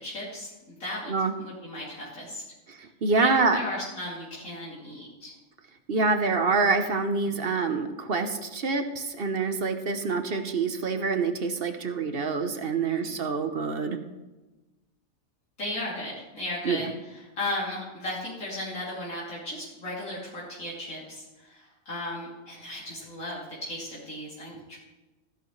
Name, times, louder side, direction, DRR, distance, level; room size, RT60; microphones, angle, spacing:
voice 1, 0.0-2.4 3.1-5.3 7.2-7.5 12.9-13.2 15.6-24.8, left 1 dB, 80° left, -8 dB, 3.5 m, -36 dB
voice 2, 2.7-3.6 5.9-14.0 16.6-16.8, right 4 dB, 50° right, 8 dB, 1.1 m, -26 dB
15.0 x 11.0 x 3.2 m, 1.1 s
omnidirectional pair, 1.4 m